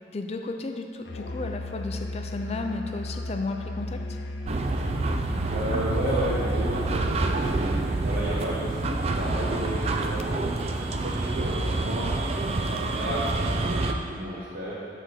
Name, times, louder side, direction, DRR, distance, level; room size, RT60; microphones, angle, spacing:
voice 1, 0.1-4.2, left 3 dB, 35° left, 5 dB, 0.4 m, -33 dB
Musical instrument, 1.1-7.4, left 2 dB, 70° left, 0.7 m, -35 dB
sound 1, 4.5-13.9, right 2 dB, 35° right, 0.4 m, -27 dB
voice 2, 5.1-14.7, right 1 dB, 55° right, -8 dB, 1.1 m, -33 dB
6.8 x 4.5 x 6.1 m, 2.5 s
head